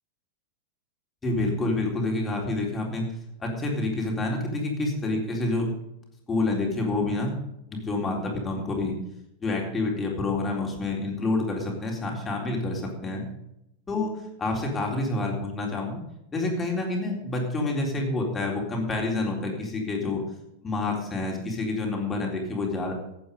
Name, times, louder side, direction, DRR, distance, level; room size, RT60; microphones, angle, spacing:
voice 1, 1.2-3.1 3.4-5.7 6.3-7.3 7.7-8.9 9.4-13.2 13.9-14.1 14.4-16.0 16.3-20.2 20.6-22.9, left 2 dB, 15° left, -1 dB, 3.9 m, -28 dB
15.0 x 9.0 x 5.3 m, 0.82 s
figure-of-eight pair, 90°, 0 cm